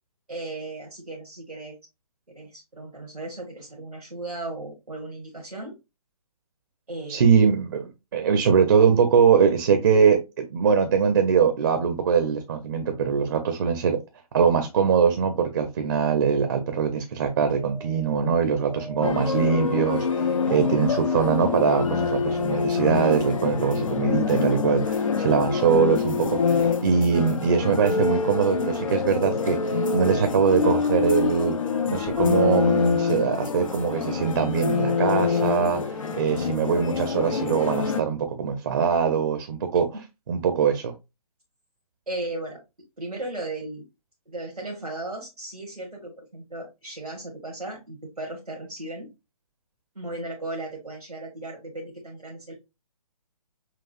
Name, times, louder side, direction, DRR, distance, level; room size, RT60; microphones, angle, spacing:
voice 1, 0.3-1.8 2.3-5.8 6.9-7.3 42.1-42.6 43.0-43.8 44.3-49.1 49.9-52.5, right 2 dB, 85° right, 1.3 m, -36 dB
voice 2, 7.1-14.0 14.3-31.6 31.9-39.9 40.3-40.9, right 6 dB, 40° right, 0.6 m, -22 dB
sound 1, 17.5-23.6 25.9-26.0 26.2-26.3, equal, 40° left, 1.2 m, -43 dB
sound 2, 19.0-38.0, left 5 dB, 55° left, 0.6 m, -25 dB
5.8 x 2.4 x 2.4 m
figure-of-eight pair, 135°, 19 cm